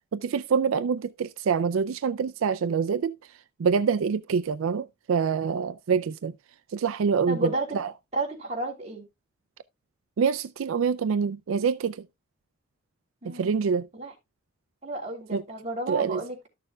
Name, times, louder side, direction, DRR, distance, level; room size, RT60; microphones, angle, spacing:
voice 1, 0.1-3.1 3.6-6.3 6.7-7.9 10.2-12.1 13.2-13.9 15.3-15.4 15.9-16.2, right 6 dB, 85° right, 0.4 m, -26 dB
voice 2, 7.3-7.8 8.1-9.1 13.2-13.6 14.0-14.1 14.8-16.5, right 2 dB, 35° right, 3.1 m, -32 dB
13.0 x 6.7 x 2.3 m
head